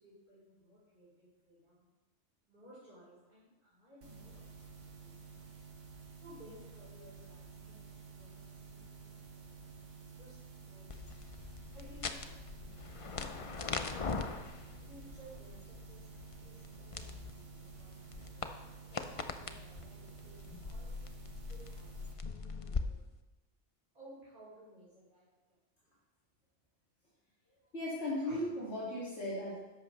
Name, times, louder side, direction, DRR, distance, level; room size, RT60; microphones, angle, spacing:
voice 1, 0.0-1.8 2.5-5.2 6.2-10.4 10.7-11.2 11.7-14.2 14.7-16.1 16.4-18.4 19.1-21.2 21.5-23.0 23.9-25.2 28.2-28.4, equal, 45° right, -11 dB, 4.5 m, -58 dB
sound 1, 4.0-22.1, right 5 dB, 80° right, 1.9 m, -52 dB
sound 2, 10.9-22.8, left 4 dB, 35° left, 0.6 m, -42 dB
voice 2, 27.7-29.6, left 1 dB, 70° left, -8 dB, 2.8 m, -37 dB
13.5 x 10.5 x 3.3 m, 1.1 s
omnidirectional pair, 1.2 m